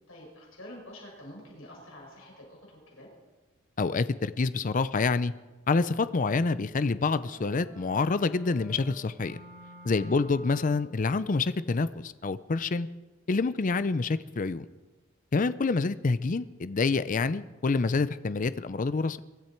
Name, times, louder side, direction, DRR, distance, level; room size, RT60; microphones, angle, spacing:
voice 1, 0.1-3.1 9.9-10.3, left 1 dB, 75° left, -2 dB, 6.5 m, -47 dB
voice 2, 3.8-5.3 5.7-9.4 9.8-12.9 13.3-14.7 15.3-19.2, left 4 dB, 40° left, 15 dB, 0.5 m, -27 dB
sound 1, 7.2-11.1, equal, 85° right, 6.5 m, -50 dB
23.5 x 13.5 x 4.5 m, 1.2 s
head